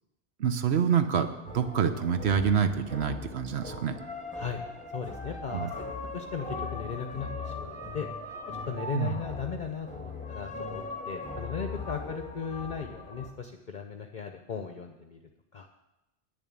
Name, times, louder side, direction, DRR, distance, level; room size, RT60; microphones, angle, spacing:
voice 1, 0.4-1.3 1.5-4.0 5.5-5.7 8.9-9.2, right 7 dB, 70° right, 9 dB, 1.1 m, -26 dB
sound 1, 1.5-13.3, left 3 dB, 5° left, 1.1 m, -39 dB
voice 2, 4.9-5.7 6.1-8.1 8.7-15.2 15.5-15.7, left 6 dB, 50° left, 5 dB, 0.8 m, -37 dB
9.7 x 7.1 x 8.7 m, 0.97 s
omnidirectional pair, 1.1 m